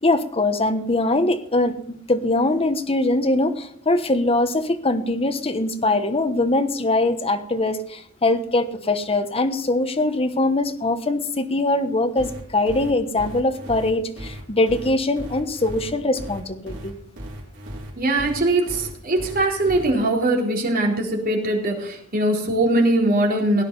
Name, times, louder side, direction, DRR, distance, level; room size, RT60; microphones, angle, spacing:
voice 1, 0.0-1.8 2.1-17.0, left 2 dB, 25° left, 9 dB, 1.2 m, -22 dB
sound 1, 12.2-19.9, equal, 65° right, 4.2 m, -36 dB
voice 2, 18.0-23.6, right 1 dB, 45° right, 0 dB, 4.0 m, -21 dB
17.5 x 10.0 x 5.5 m, 0.64 s
head